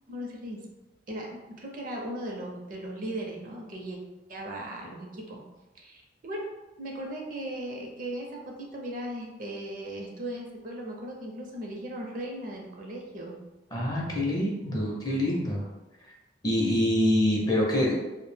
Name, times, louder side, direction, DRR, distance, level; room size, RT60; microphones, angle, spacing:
voice 1, 0.1-0.6 1.1-4.0 4.3-5.4 5.8-6.5 6.8-13.4, right 1 dB, 50° right, 0 dB, 0.5 m, -37 dB
voice 2, 13.7-15.6 16.4-17.9, left 1 dB, 20° left, -2 dB, 0.5 m, -25 dB
2.4 x 2.0 x 3.1 m, 1.1 s
head